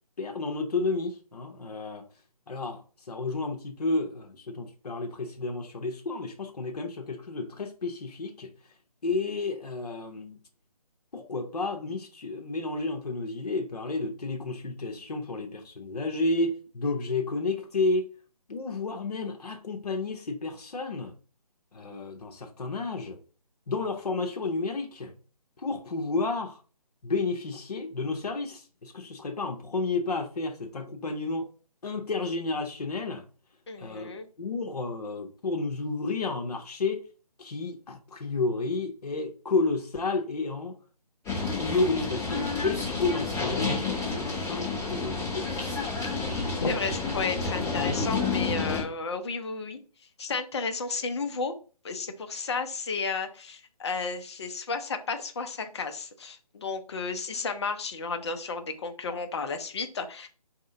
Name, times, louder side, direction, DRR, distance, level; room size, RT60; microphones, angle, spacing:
voice 1, 0.2-2.0 2.5-2.8 3.1-8.5 9.0-10.4 11.1-18.1 18.5-21.1 21.7-23.2 23.7-25.1 25.6-26.6 27.0-31.5 31.8-33.2 33.8-34.1 34.4-37.0 37.4-40.7 41.6-45.5, left 3 dB, 75° left, 0.8 m, -31 dB
voice 2, 33.7-34.3 46.0-46.1 46.6-49.8 50.2-51.5 51.8-60.3, left 4 dB, 45° left, 0.6 m, -33 dB
sound 1, 41.2-48.8, left 4 dB, 10° left, 1.1 m, -30 dB
4.1 x 2.7 x 2.6 m
figure-of-eight pair, 155°, 20 cm